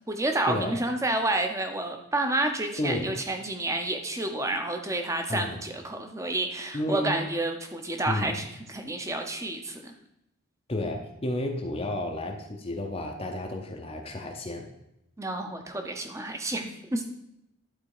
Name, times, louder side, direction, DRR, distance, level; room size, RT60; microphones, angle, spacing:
voice 1, 0.1-9.9 15.2-17.0, right 2 dB, 15° right, 5 dB, 0.7 m, -30 dB
voice 2, 2.8-3.2 5.3-5.6 6.7-7.2 8.1-8.5 10.7-14.7, left 1 dB, 25° left, 2 dB, 0.7 m, -31 dB
11.0 x 4.1 x 4.8 m, 0.81 s
head